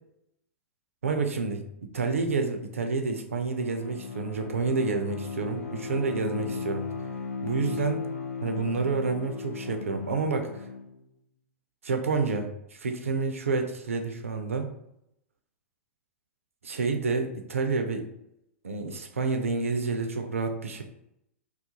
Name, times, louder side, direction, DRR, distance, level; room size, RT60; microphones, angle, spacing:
voice 1, 1.0-1.6 1.9-6.8 7.4-8.1 8.4-10.7 11.8-14.7 16.6-18.1 18.6-20.8, right 4 dB, 75° right, 5 dB, 0.4 m, -29 dB
Bowed string instrument, 3.3-11.0, left 5 dB, 75° left, 0.4 m, -36 dB
2.3 x 2.3 x 2.7 m, 0.79 s
figure-of-eight pair, 100°, 7 cm